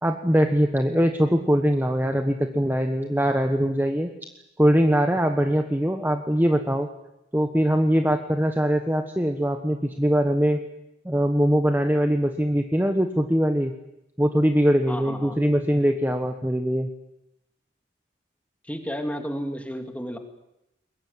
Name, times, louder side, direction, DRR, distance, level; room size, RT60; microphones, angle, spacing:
voice 1, 0.0-4.1 4.6-6.9 7.3-10.6 11.0-13.7 14.2-16.9, equal, 10° right, 6 dB, 1.2 m, -22 dB
voice 2, 14.9-15.4 18.6-20.2, equal, 5° left, 6 dB, 2.6 m, -32 dB
22.5 x 21.0 x 9.6 m, 0.86 s
head